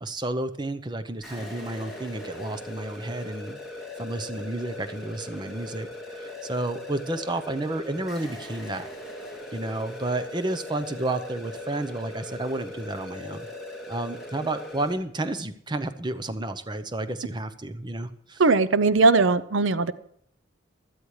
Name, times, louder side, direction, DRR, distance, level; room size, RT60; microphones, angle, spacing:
voice 1, 0.0-3.6 4.0-8.9 9.5-13.5 13.9-18.4, right 2 dB, 25° right, 11 dB, 0.7 m, -31 dB
sound 1, 1.2-14.9, left 1 dB, ahead, 2.7 m, -40 dB
voice 2, 18.4-19.9, right 3 dB, 80° right, 16 dB, 0.6 m, -19 dB
16.5 x 12.5 x 3.2 m, 0.68 s
head